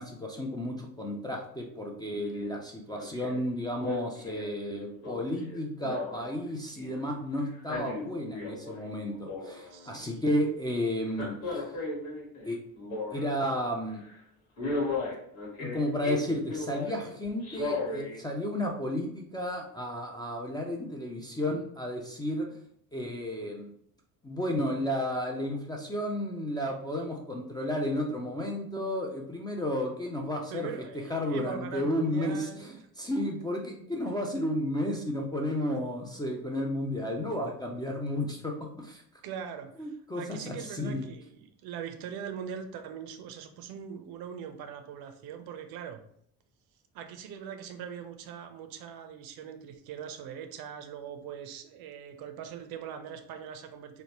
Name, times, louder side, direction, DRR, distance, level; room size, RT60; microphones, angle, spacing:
voice 1, 0.0-11.6 12.4-12.6 13.1-14.0 15.6-22.5 22.9-23.7 24.2-30.7 31.1-39.0 39.8-41.1, left 1 dB, 10° left, 0 dB, 0.4 m, -32 dB
Male speech man speaking, 2.3-2.6 2.9-3.4 3.8-7.0 7.5-8.8 9.1-9.9 11.1-13.5 13.9-14.1 14.6-17.0 17.4-18.2 18.6-18.7, left 3 dB, 75° left, 1.1 m, -36 dB
voice 2, 9.7-10.3 30.5-32.8 39.2-46.0 46.9-54.0, right 8 dB, 55° right, 7 dB, 0.5 m, -41 dB
3.0 x 2.0 x 2.8 m, 0.67 s
hypercardioid pair, 55°, 44 cm